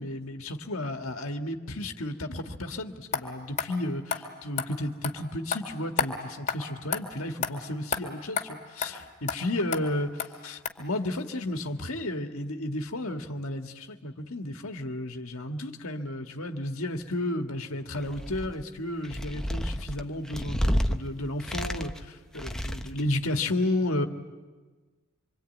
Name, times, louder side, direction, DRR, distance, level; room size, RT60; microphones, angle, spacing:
voice 1, 0.0-24.1, left 1 dB, 70° left, 5 dB, 1.8 m, -33 dB
sound 1, 3.1-3.2 3.6-3.7 4.1-4.2 4.6-4.7 5.0-5.1 5.5-5.6 6.0-6.1 6.5-6.6 6.9-7.0 7.4-7.5 7.9-8.0 8.4-8.5 8.8-8.9 9.3-9.4 9.7-9.8 10.2-10.3 10.6-10.7, left 6 dB, 35° left, 2.3 m, -29 dB
sound 2, 18.0-18.6 19.0-21.0 21.4-22.1 22.4-23.0, equal, 5° left, 0.9 m, -30 dB
25.5 x 25.0 x 9.2 m, 1.4 s
head